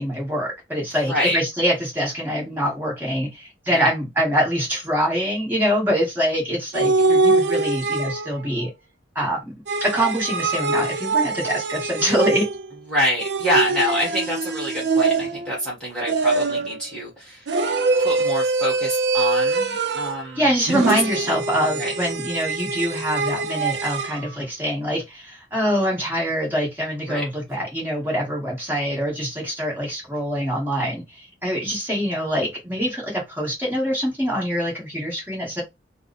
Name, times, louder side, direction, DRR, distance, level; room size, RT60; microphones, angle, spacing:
voice 1, 0.0-8.7 9.1-9.4 9.8-12.5 20.4-35.6, equal, 10° right, 1.5 m, -24 dB
voice 2, 0.8-1.4 3.7-3.9 12.9-17.5 18.0-20.8 21.7-21.9 27.1-27.3, equal, 5° left, 1.4 m, -26 dB
sound 1, 6.7-8.5 9.7-12.7 13.2-15.6 16.1-16.8 17.5-20.3 20.7-24.2, right 3 dB, 65° right, 0.5 m, -23 dB
3.4 x 2.1 x 4.1 m
head